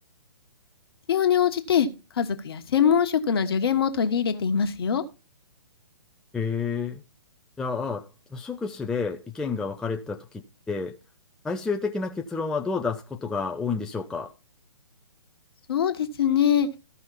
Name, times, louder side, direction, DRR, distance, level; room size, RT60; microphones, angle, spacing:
voice 1, 1.1-1.9 2.1-5.0 15.7-16.7, left 8 dB, 50° left, 1.4 m, -23 dB
voice 2, 6.3-7.0 7.6-11.0 11.4-14.3, left 4 dB, 5° left, 0.4 m, -30 dB
14.5 x 5.6 x 4.1 m
figure-of-eight pair, 125°, 16 cm